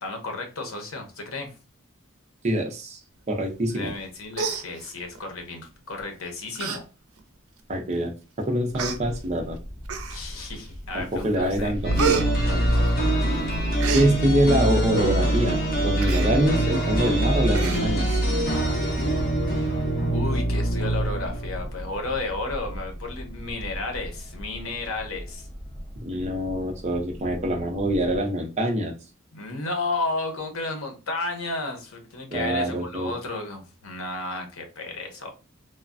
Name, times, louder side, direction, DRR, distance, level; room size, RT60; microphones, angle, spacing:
voice 1, 0.0-1.5 3.7-6.8 10.1-11.7 20.1-25.5 29.3-35.3, left 3 dB, 80° left, 4 dB, 0.8 m, -33 dB
voice 2, 2.4-3.0 3.3-3.9 7.7-8.1 8.4-9.6 10.9-12.3 13.9-18.2 26.0-28.9 32.3-33.1, right 1 dB, 30° right, 2 dB, 0.5 m, -25 dB
Human voice, 3.9-4.1 4.3-5.2 6.0-6.2 6.6-6.8 7.2-7.3 8.1-8.2 8.7-9.0 9.9-10.4 10.9-11.3 11.5-13.2 13.5-14.1 16.0-16.3 16.7-16.8 17.0-17.2 17.5-18.2 18.6-18.7, right 6 dB, 85° right, 0.5 m, -30 dB
sound 1, 8.7-28.2, equal, 10° right, 0.9 m, -38 dB
sound 2, 11.8-21.7, right 1 dB, 45° left, 0.8 m, -24 dB
3.2 x 2.1 x 2.4 m, 0.33 s
head